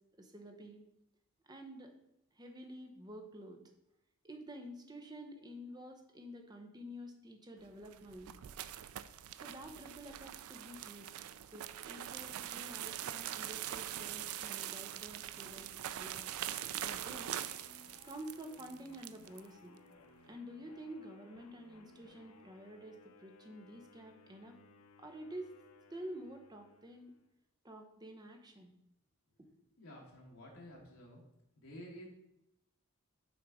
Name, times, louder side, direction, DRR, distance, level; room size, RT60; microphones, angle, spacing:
voice 1, 0.2-0.8 1.4-1.9 2.3-3.6 4.2-8.3 9.4-11.2 11.5-16.3 16.8-17.3 18.0-19.8 20.3-24.6 25.0-25.5 25.9-27.1 27.6-28.7, equal, 20° right, 4 dB, 0.7 m, -49 dB
sound 1, 7.7-19.5, right 11 dB, 80° right, 0.3 m, -43 dB
sound 2, 17.1-27.3, left 3 dB, 85° left, 0.7 m, -61 dB
voice 2, 29.5-31.2 31.5-32.1, equal, 70° left, -2 dB, 1.4 m, -52 dB
6.1 x 3.6 x 4.8 m, 0.84 s
head